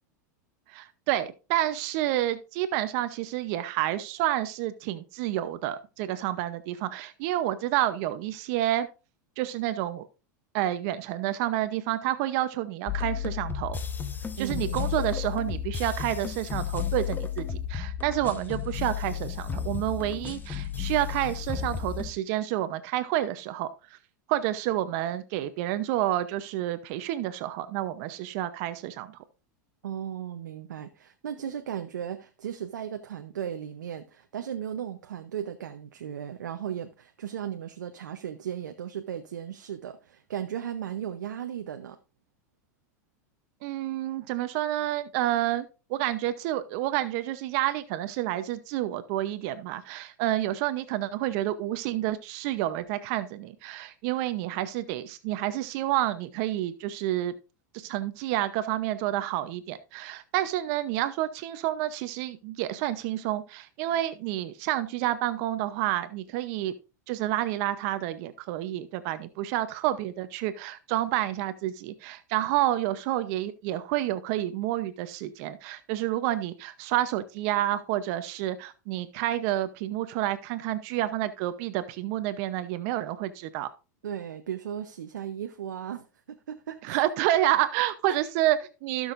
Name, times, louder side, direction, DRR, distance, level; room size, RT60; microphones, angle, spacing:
voice 1, 0.7-8.9 9.4-10.1 10.5-13.8 14.4-24.0 24.3-29.2 43.6-57.3 57.7-66.7 67.1-83.7 86.8-89.1, right 14 dB, 60° right, 0.8 m, -29 dB
sound 1, 12.9-22.1, left 8 dB, 20° left, 1.1 m, -33 dB
voice 2, 14.4-15.0 29.8-42.0 84.0-87.0 88.1-88.2, right 9 dB, 90° right, 0.8 m, -36 dB
16.0 x 6.4 x 2.6 m
hypercardioid pair, 105°, 10 cm